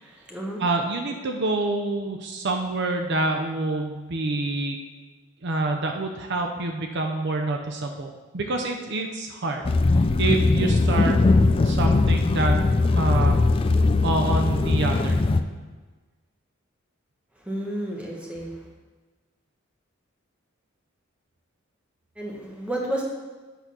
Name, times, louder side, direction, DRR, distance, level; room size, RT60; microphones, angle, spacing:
voice 1, 0.0-0.6 17.4-18.6 22.2-23.0, right 1 dB, 5° right, -2 dB, 1.2 m, -31 dB
voice 2, 0.6-4.8 5.4-9.7 10.0-11.2 11.6-12.6 13.0-13.4 14.0-15.2, right 2 dB, 55° right, 4 dB, 0.6 m, -27 dB
sound 1, 9.6-15.4, left 3 dB, 25° left, 0.3 m, -20 dB
8.2 x 4.0 x 6.1 m, 1.3 s
head